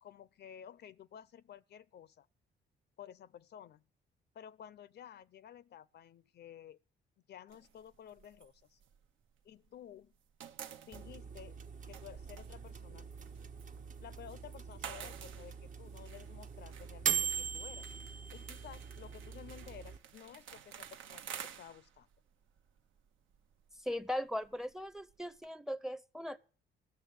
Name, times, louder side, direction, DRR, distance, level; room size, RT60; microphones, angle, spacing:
voice 1, 0.0-2.3 3.0-3.8 4.3-6.8 7.3-8.8 9.4-10.1 10.9-11.5 11.9-13.1 14.0-17.9 18.3-22.1, left 9 dB, 55° left, 0.6 m, -53 dB
sound 1, 7.5-9.7 10.0-25.5, right 8 dB, 80° right, 0.9 m, -52 dB
sound 2, 10.9-20.0, right 6 dB, 40° right, 0.7 m, -41 dB
voice 2, 23.8-26.4, left 1 dB, ahead, 0.6 m, -38 dB
14.5 x 6.6 x 9.3 m
cardioid pair, 90°, 20 cm